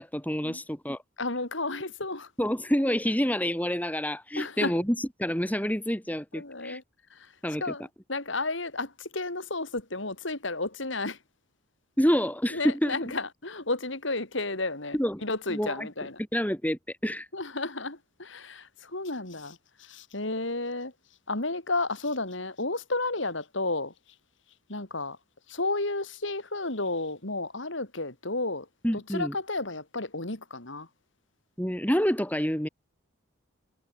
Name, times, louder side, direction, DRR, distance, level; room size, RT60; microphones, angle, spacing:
voice 1, 0.0-1.0 2.4-6.8 7.4-7.7 12.0-13.0 14.9-15.2 15.5-15.9 16.3-17.3 28.8-29.3 31.6-32.7, equal, 10° left, 4.3 m, -28 dB
voice 2, 1.2-2.3 4.4-4.8 6.3-6.8 7.1-7.3 7.6-11.2 12.5-16.2 17.3-20.9 21.3-23.9 24.7-25.2 25.5-28.7 28.9-30.9, left 2 dB, 60° left, 3.5 m, -32 dB
head